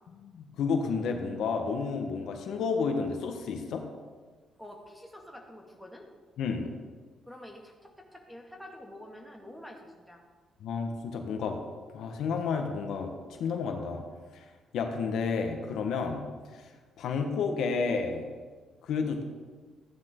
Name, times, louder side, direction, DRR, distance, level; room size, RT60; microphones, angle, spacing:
voice 1, 0.2-3.8 6.4-6.7 10.6-11.6 11.9-14.0 14.7-16.2 17.0-18.3 18.8-19.2, left 5 dB, 75° left, 4 dB, 1.4 m, -31 dB
voice 2, 4.6-6.1 7.3-10.2, left 1 dB, ahead, 0 dB, 2.2 m, -47 dB
14.5 x 10.0 x 3.9 m, 1.4 s
cardioid pair, 90°, 0 cm